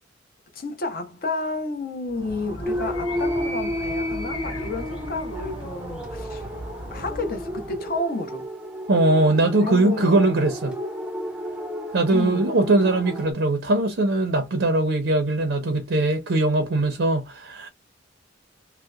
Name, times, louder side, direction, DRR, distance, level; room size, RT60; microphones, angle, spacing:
voice 1, 0.5-6.5 6.9-8.5 9.6-10.3 12.1-12.5, left 2 dB, 50° left, 0.7 m, -31 dB
Animal, 2.1-7.9, equal, 80° left, 1.5 m, -36 dB
sound 1, 2.6-13.3, equal, 5° right, 0.5 m, -32 dB
voice 2, 8.9-10.7 11.9-17.7, right 2 dB, 65° right, 0.5 m, -21 dB
2.7 x 2.0 x 2.2 m
head